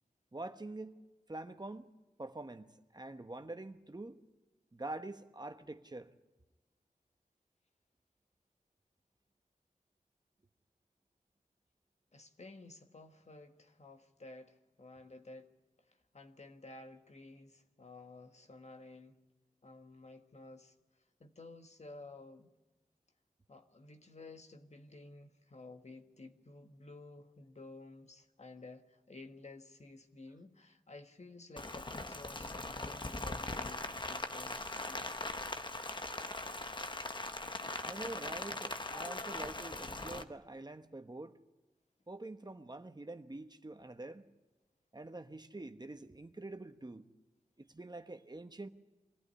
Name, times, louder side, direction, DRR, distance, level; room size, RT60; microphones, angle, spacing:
voice 1, 0.3-1.9 2.2-4.2 4.7-6.1 37.8-41.3 42.1-44.2 44.9-47.1 47.6-48.7, right 2 dB, 30° right, 1.2 m, -46 dB
voice 2, 12.1-15.5 15.9-19.2 19.6-20.7 21.2-22.5 23.5-35.2, left 2 dB, 50° left, 1.6 m, -53 dB
Rain, 31.6-40.2, left 2 dB, 35° left, 1.2 m, -40 dB
23.0 x 15.0 x 9.9 m
wide cardioid pair, 55°, 14 cm